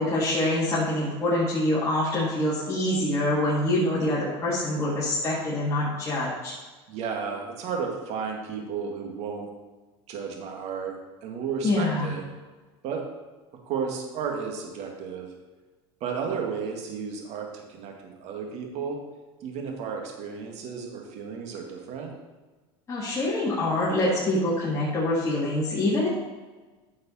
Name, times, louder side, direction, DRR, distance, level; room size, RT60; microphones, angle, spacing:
voice 1, 0.0-6.5 11.6-12.2 22.9-26.1, left 1 dB, 20° left, -9 dB, 3.0 m, -25 dB
voice 2, 6.9-9.5 10.1-10.9 11.2-12.2 12.8-13.0 13.7-15.3 16.0-19.0 19.4-22.1, right 6 dB, 55° right, 2 dB, 2.0 m, -33 dB
9.5 x 6.4 x 4.3 m, 1.3 s
supercardioid pair, 105°, 13 cm